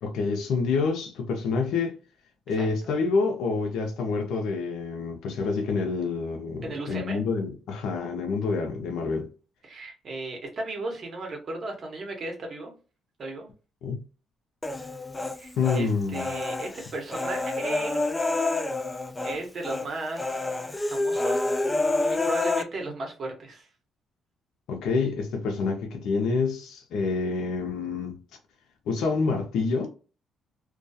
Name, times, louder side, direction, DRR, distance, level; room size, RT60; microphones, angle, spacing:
voice 1, 0.0-2.0 2.5-9.3 13.8-14.0 15.6-16.3 24.7-28.1 28.9-29.9, left 4 dB, 85° left, 0.6 m, -27 dB
voice 2, 2.5-2.9 6.6-7.2 9.6-12.7 13.2-13.5 15.3-18.0 19.2-20.3 20.9-21.5 22.1-23.7, right 2 dB, 45° right, 1.0 m, -35 dB
Human voice, 14.6-15.8 16.1-19.4 19.6-19.9 20.2-22.6, left 2 dB, 15° left, 0.3 m, -28 dB
2.3 x 2.3 x 2.6 m
cardioid pair, 100°, 0 cm